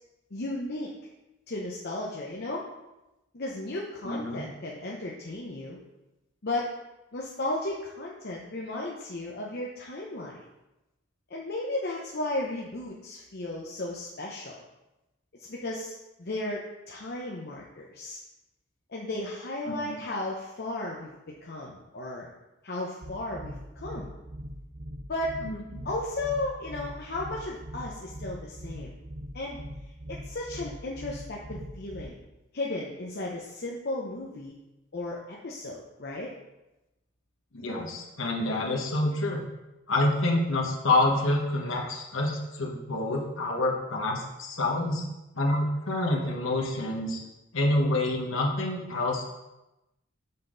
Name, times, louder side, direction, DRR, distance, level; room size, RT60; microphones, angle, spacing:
voice 1, 0.3-0.9 1.5-2.6 3.3-5.8 6.4-6.7 7.1-10.4 11.3-14.6 15.5-15.9 16.2-18.2 18.9-22.3 22.6-24.1 25.1-25.4 25.8-29.0 29.3-29.6 30.1-32.2 32.5-34.5 34.9-36.3, left 2 dB, 50° left, -3 dB, 0.7 m, -34 dB
voice 2, 4.0-4.4 19.7-20.0 25.4-25.8 37.5-39.4 39.9-45.0 45.3-47.2 47.5-49.2, left 2 dB, 65° left, -1 dB, 1.2 m, -27 dB
sound 1, 23.0-32.0, equal, 45° right, 0.9 m, -41 dB
5.9 x 5.6 x 3.9 m, 0.98 s
head